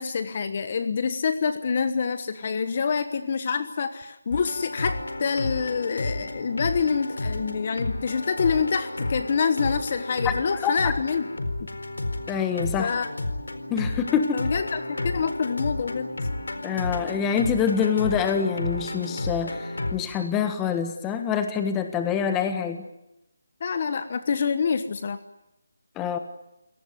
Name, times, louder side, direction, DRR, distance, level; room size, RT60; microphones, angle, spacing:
voice 1, 0.0-11.3 12.8-13.1 14.3-16.1 23.6-25.2, left 5 dB, 30° left, 11 dB, 1.2 m, -26 dB
sound 1, 4.3-20.0, left 2 dB, 80° left, 4.3 m, -31 dB
voice 2, 12.3-12.9 13.7-14.4 16.6-22.8 26.0-26.2, left 7 dB, 10° left, 8 dB, 1.5 m, -26 dB
26.5 x 18.5 x 9.5 m, 0.89 s
figure-of-eight pair, 175°, 0 cm